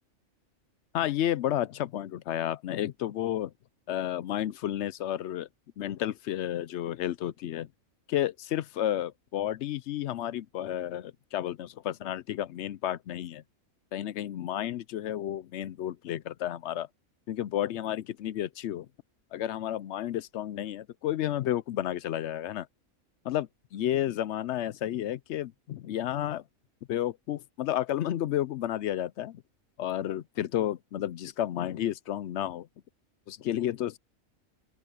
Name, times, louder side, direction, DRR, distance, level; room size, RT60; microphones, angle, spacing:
voice 1, 0.9-3.5 3.9-5.5 5.8-7.7 8.1-13.4 13.9-16.9 17.3-18.9 19.3-22.7 23.2-26.4 26.9-29.4 29.8-32.7 33.3-34.0, left 12 dB, 65° left, 0.7 m, -31 dB
open air
omnidirectional pair, 1.4 m